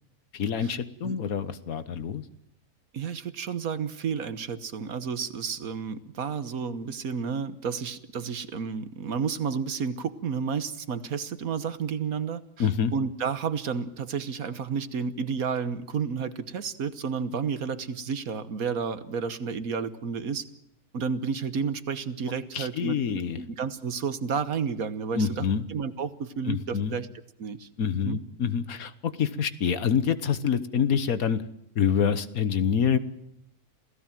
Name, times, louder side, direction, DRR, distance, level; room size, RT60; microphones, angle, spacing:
voice 1, 0.3-2.2 12.6-12.9 22.5-23.4 25.1-25.6 26.5-27.0 27.8-28.9 29.2-31.4 31.7-33.0, left 7 dB, 65° left, 13 dB, 1.6 m, -26 dB
voice 2, 2.9-20.4 20.9-27.1 27.4-27.7 28.0-28.2, right 6 dB, 65° right, 13 dB, 1.6 m, -31 dB
27.5 x 17.0 x 7.5 m, 0.80 s
omnidirectional pair, 1.6 m